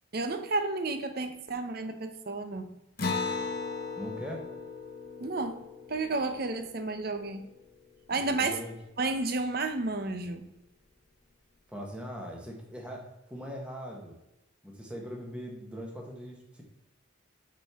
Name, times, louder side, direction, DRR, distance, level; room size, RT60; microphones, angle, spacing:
voice 1, 0.1-2.8 5.2-7.5 8.1-8.6 9.0-10.5, right 3 dB, 50° right, 8 dB, 0.7 m, -32 dB
Acoustic guitar, 3.0-7.9, left 4 dB, 45° left, 0.9 m, -37 dB
voice 2, 4.0-4.5 8.1-8.8 11.7-14.1 14.6-16.6, equal, 5° right, -1 dB, 1.3 m, -41 dB
8.8 x 4.5 x 3.6 m, 0.93 s
head